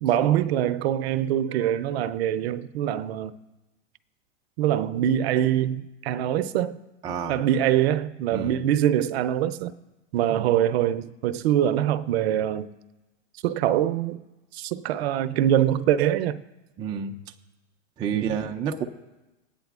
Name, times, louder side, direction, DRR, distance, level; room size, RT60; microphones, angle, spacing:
voice 1, 0.0-3.4 4.6-6.8 7.3-9.7 10.1-12.7 13.4-14.2 14.5-16.4 18.1-18.4, right 11 dB, 55° right, 0.6 m, -24 dB
voice 2, 7.0-7.4 8.3-8.6 10.3-10.5 16.8-17.2 18.0-18.9, right 7 dB, 15° right, 0.4 m, -29 dB
19.5 x 8.9 x 2.4 m
hypercardioid pair, 130°, 37 cm